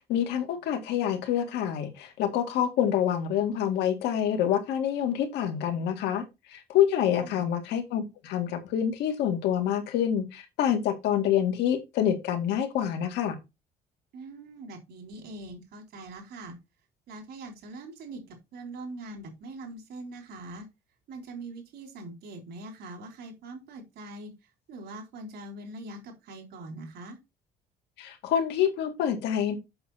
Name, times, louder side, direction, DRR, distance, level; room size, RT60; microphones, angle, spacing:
voice 1, 0.1-6.2 6.5-13.4 28.0-29.6, left 9 dB, 85° left, 1.9 m, -27 dB
voice 2, 7.2-7.5 14.1-16.6 17.1-20.7 21.1-24.3 24.7-27.2, right 2 dB, 75° right, 3.7 m, -42 dB
7.8 x 6.1 x 4.1 m
cardioid pair, 110°, 17 cm